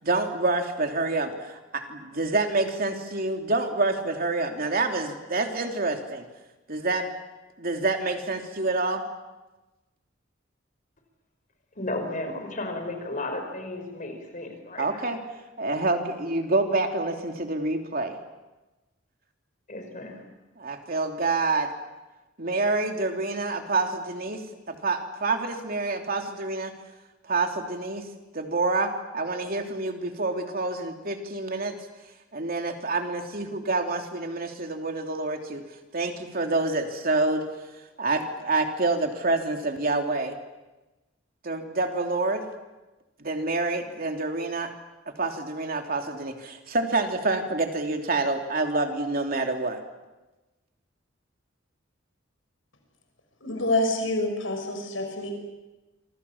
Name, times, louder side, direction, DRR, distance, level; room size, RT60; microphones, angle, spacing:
voice 1, 0.0-6.2 6.7-7.1 7.6-9.0 14.8-15.2 15.6-18.2 20.6-21.7 22.4-24.4 24.7-26.7 27.3-28.0 28.3-31.7 32.3-35.6 35.9-37.4 38.0-40.3 41.4-42.4 43.2-44.7 45.2-49.8, right 3 dB, 50° right, 4 dB, 3.1 m, -27 dB
voice 2, 11.8-15.0 19.7-20.2, left 2 dB, 40° left, 5 dB, 5.4 m, -34 dB
voice 3, 53.4-55.3, left 2 dB, 80° left, 4 dB, 6.2 m, -27 dB
27.0 x 25.0 x 7.3 m, 1.1 s
head